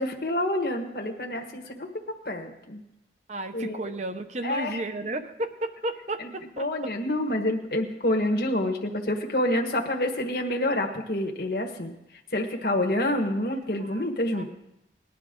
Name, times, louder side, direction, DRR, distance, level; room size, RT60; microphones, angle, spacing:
voice 1, 0.0-1.9 2.2-2.8 3.5-3.9 4.4-4.8 6.2-11.9 12.3-14.4, left 1 dB, 55° left, 2 dB, 1.4 m, -28 dB
voice 2, 3.3-6.7 13.8-14.1 14.3-14.4, right 2 dB, 40° right, 9 dB, 0.8 m, -33 dB
19.5 x 11.0 x 3.8 m, 0.86 s
head